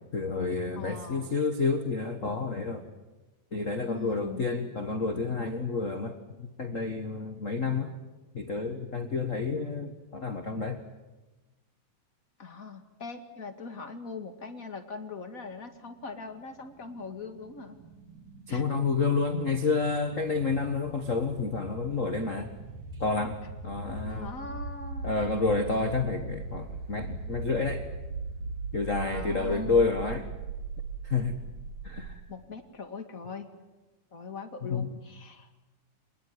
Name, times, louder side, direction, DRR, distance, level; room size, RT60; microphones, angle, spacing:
voice 1, 0.1-2.8 3.5-8.0 8.3-10.8 18.5-22.5 23.0-24.3 25.0-27.9 28.7-30.3 31.0-31.4 31.8-32.2 34.6-34.9, left 4 dB, 80° left, 7 dB, 0.7 m, -29 dB
voice 2, 0.8-1.4 3.9-4.5 12.4-17.8 18.5-18.6 24.1-25.2 29.1-30.0 32.3-33.5 34.1-35.7, left 4 dB, 30° left, 6 dB, 1.8 m, -41 dB
sound 1, 16.2-32.1, right 3 dB, 70° right, 4.2 m, -40 dB
26.5 x 20.0 x 9.5 m, 1.1 s
omnidirectional pair, 3.9 m